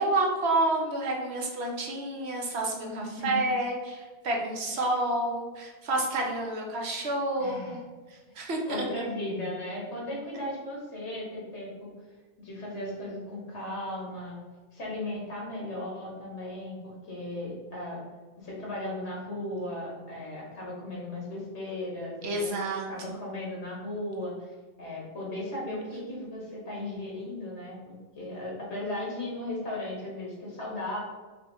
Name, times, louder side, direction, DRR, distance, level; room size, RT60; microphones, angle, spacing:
voice 1, 0.0-7.8 8.4-8.9 22.2-22.9, right 2 dB, 70° right, 0 dB, 1.1 m, -29 dB
voice 2, 2.8-3.5 7.4-7.8 8.7-11.9 12.4-14.4 14.7-18.0 18.4-22.5 22.8-31.0, left 1 dB, 80° left, -4 dB, 1.7 m, -36 dB
5.6 x 3.0 x 2.7 m, 1.3 s
omnidirectional pair, 1.1 m